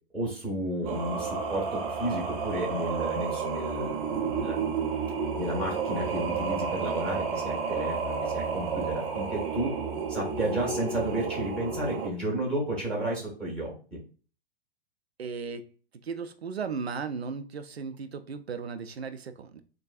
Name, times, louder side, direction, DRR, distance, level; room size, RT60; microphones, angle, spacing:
voice 1, 0.1-4.8 5.3-9.7 10.1-14.0, right 1 dB, 5° left, -4 dB, 1.3 m, -32 dB
Singing, 0.8-12.1, right 5 dB, 20° right, 0.5 m, -31 dB
voice 2, 15.2-15.7 16.0-19.6, right 5 dB, 85° right, 9 dB, 0.5 m, -36 dB
4.6 x 2.2 x 2.4 m, 0.38 s
figure-of-eight pair, 110°, 31 cm